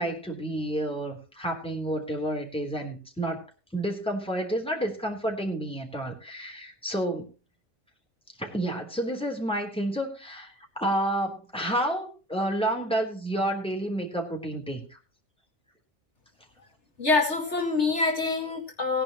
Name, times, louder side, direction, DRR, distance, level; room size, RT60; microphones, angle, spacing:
voice 1, 0.0-3.4 3.7-7.3 8.4-15.0, right 1 dB, 5° left, 1 dB, 3.6 m, -30 dB
voice 2, 17.0-19.0, left 3 dB, 55° left, 1 dB, 2.3 m, -25 dB
19.5 x 10.5 x 3.1 m, 0.35 s
omnidirectional pair, 1.4 m